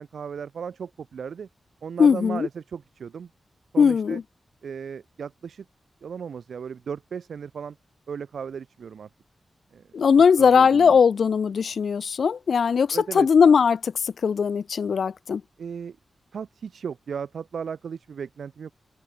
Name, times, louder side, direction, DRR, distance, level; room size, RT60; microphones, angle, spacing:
voice 1, 0.0-1.5 1.8-3.3 3.7-4.2 4.6-5.7 6.0-7.8 8.1-9.1 9.7-9.8 10.4-11.0 12.9-13.3 15.6-16.0 16.3-18.7, right 6 dB, 80° right, 3.7 m, -36 dB
voice 2, 2.0-2.5 3.8-4.2 9.9-15.4, left 6 dB, 75° left, 2.8 m, -19 dB
open air
wide cardioid pair, 90°, 0 cm